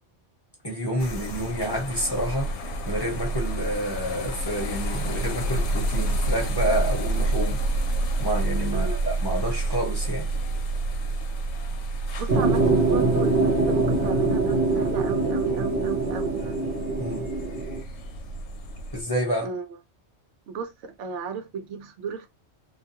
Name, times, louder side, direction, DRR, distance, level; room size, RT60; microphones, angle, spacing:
voice 1, 0.6-2.5 2.9-7.6 8.2-10.3 17.0-17.3 18.9-19.5, equal, 20° left, 0.9 m, -29 dB
sound 1, 1.0-19.0, right 2 dB, 75° left, 0.9 m, -29 dB
voice 2, 12.2-16.7 19.4-19.7 20.5-22.3, right 6 dB, 80° right, 0.9 m, -34 dB
sound 2, 12.3-17.8, right 3 dB, 55° right, 0.9 m, -23 dB
2.4 x 2.2 x 2.7 m
omnidirectional pair, 1.2 m